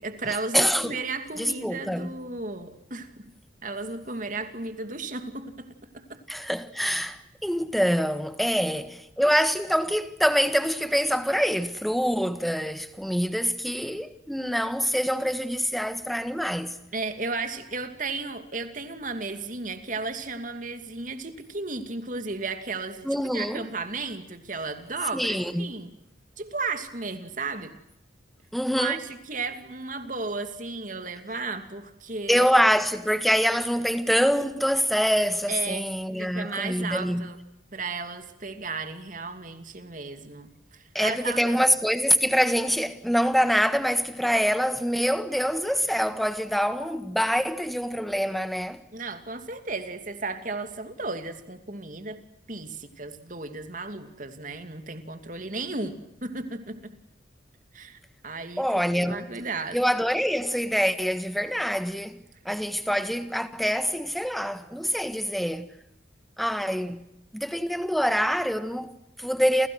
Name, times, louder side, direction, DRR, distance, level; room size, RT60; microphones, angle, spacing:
voice 1, 0.0-3.3 3.6-5.7 5.9-6.2 8.6-8.7 16.9-23.1 23.3-25.9 26.4-27.7 28.8-32.5 35.5-35.9 36.2-37.4 37.7-41.6 48.9-52.2 52.5-55.9 56.2-56.9 57.7-59.8, right 3 dB, 40° right, 2.7 m, -34 dB
voice 2, 0.5-1.0 1.4-2.1 6.3-16.8 23.0-23.7 25.1-25.7 28.5-29.0 32.3-37.3 40.9-48.8 58.6-59.2 59.7-65.7 66.4-67.0 67.3-69.7, equal, ahead, 1.5 m, -25 dB
29.5 x 29.0 x 6.3 m
head